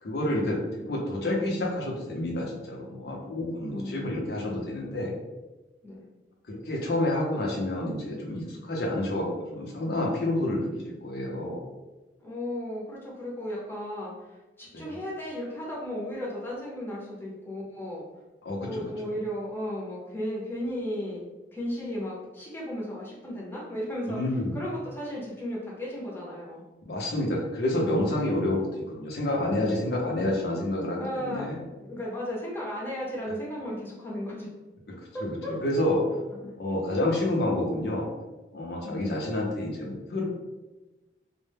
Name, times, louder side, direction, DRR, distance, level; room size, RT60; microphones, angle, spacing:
voice 1, 0.0-5.1 6.5-11.6 14.7-14.9 18.4-18.9 24.1-24.6 26.8-31.6 35.2-36.1 36.6-38.1 38.5-40.2, left 1 dB, 60° left, -2 dB, 0.6 m, -29 dB
voice 2, 3.7-4.2 5.8-6.0 12.2-18.0 18.5-24.2 24.5-26.6 31.0-31.5 31.8-34.5 35.1-35.5 36.4-36.6 38.8-39.1, equal, 10° left, -5 dB, 0.6 m, -35 dB
2.1 x 2.0 x 3.2 m, 1.1 s
head